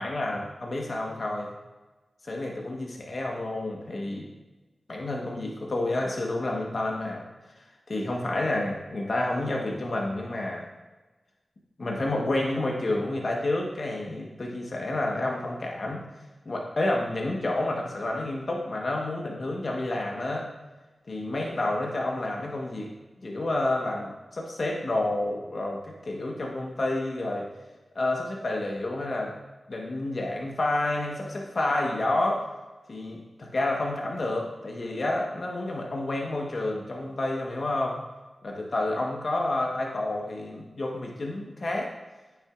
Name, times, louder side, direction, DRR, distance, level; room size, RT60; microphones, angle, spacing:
voice 1, 0.0-1.5 2.2-4.3 4.9-7.2 7.9-10.7 11.8-16.0 16.4-20.5 21.1-22.9 23.2-27.5 27.9-29.3 29.7-32.5 32.9-38.0 38.4-41.9, left 2 dB, 60° left, -1 dB, 1.2 m, -29 dB
8.8 x 7.1 x 2.5 m, 1.2 s
cardioid pair, 40°, 0 cm